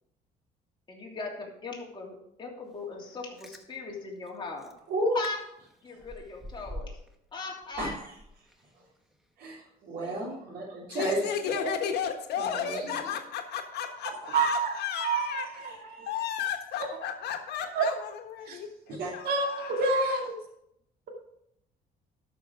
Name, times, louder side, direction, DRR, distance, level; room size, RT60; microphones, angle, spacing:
voice 1, 0.9-4.7 5.1-5.4 5.8-7.0 7.3-8.0 10.0-10.2, left 3 dB, 30° left, -2 dB, 3.0 m, -39 dB
Chewing mastication, 3.1-3.6 4.3-4.4 4.6-4.8 5.2-5.3 5.6-7.2 7.5-8.7 9.1-9.2, equal, ahead, 1.1 m, -44 dB
voice 2, 4.9-5.2 7.8-8.1 9.4-11.8 12.4-12.6 19.0-19.1, right 1 dB, 80° right, -8 dB, 3.8 m, -32 dB
voice 3, 10.9-20.3, left 8 dB, 75° left, 5 dB, 1.5 m, -34 dB
voice 4, 14.3-14.7 15.0-16.1 17.8-17.9 18.5-18.6 19.2-20.4, right 4 dB, 65° right, 1 dB, 2.2 m, -28 dB
12.0 x 6.5 x 4.7 m, 0.78 s
cardioid pair, 110°, 17 cm